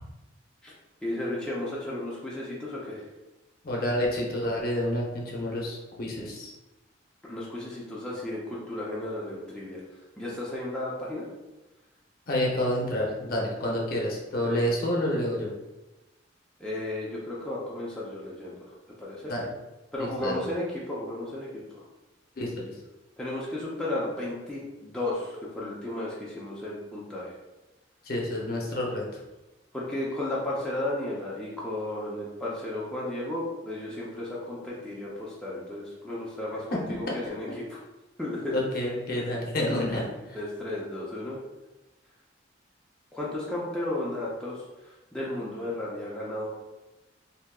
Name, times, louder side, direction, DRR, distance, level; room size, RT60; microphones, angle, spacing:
voice 1, 1.0-3.0 7.2-9.8 10.2-11.3 14.4-14.7 16.6-18.6 19.0-19.3 19.9-21.6 23.2-27.3 29.7-37.8 38.2-38.6 39.2-39.4 39.9-40.1 40.3-41.4 43.1-44.6 45.1-46.5, left 1 dB, 5° left, -7 dB, 0.4 m, -34 dB
voice 2, 3.6-6.5 12.3-15.5 19.3-19.5 20.0-20.5 22.4-22.7 28.1-29.1 36.7-36.8 37.1-37.2 38.5-40.0, left 1 dB, 50° left, -2 dB, 0.6 m, -29 dB
3.5 x 2.7 x 2.2 m, 1.1 s
head